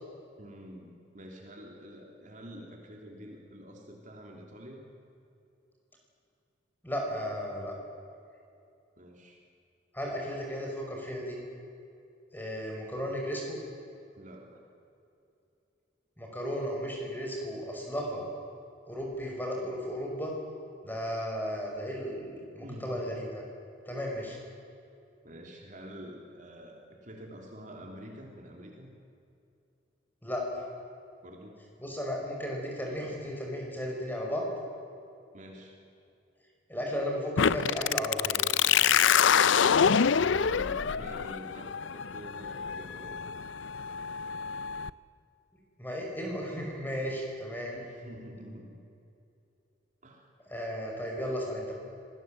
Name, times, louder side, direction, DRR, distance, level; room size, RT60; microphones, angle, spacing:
voice 1, 0.4-4.9 9.0-9.4 14.2-14.6 22.6-23.1 25.2-28.9 31.2-31.6 35.3-35.8 39.7-43.3 47.7-48.7 50.0-50.3, equal, 40° right, 1 dB, 3.0 m, -47 dB
voice 2, 6.8-7.7 9.9-11.4 12.3-13.6 16.2-18.3 18.9-20.3 20.8-23.4 23.9-24.4 30.2-30.7 31.8-34.4 36.7-38.4 45.8-47.8 50.5-51.7, equal, 10° left, -1 dB, 5.4 m, -34 dB
sound 1, 37.4-44.9, left 7 dB, 80° left, 0.5 m, -26 dB
25.5 x 18.5 x 7.7 m, 2.6 s
head